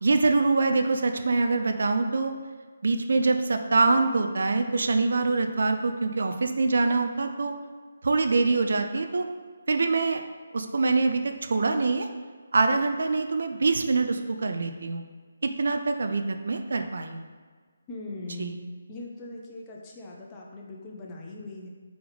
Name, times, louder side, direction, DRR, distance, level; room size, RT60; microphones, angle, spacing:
voice 1, 0.0-2.3 2.8-7.5 8.0-9.3 9.7-10.2 10.5-12.1 12.5-15.0 15.4-17.3 18.4-18.5, right 3 dB, 65° right, 6 dB, 0.5 m, -24 dB
voice 2, 17.9-18.6 18.9-21.7, left 2 dB, 20° left, -2 dB, 0.9 m, -40 dB
4.7 x 4.0 x 5.0 m, 1.5 s
figure-of-eight pair, 150°, 0 cm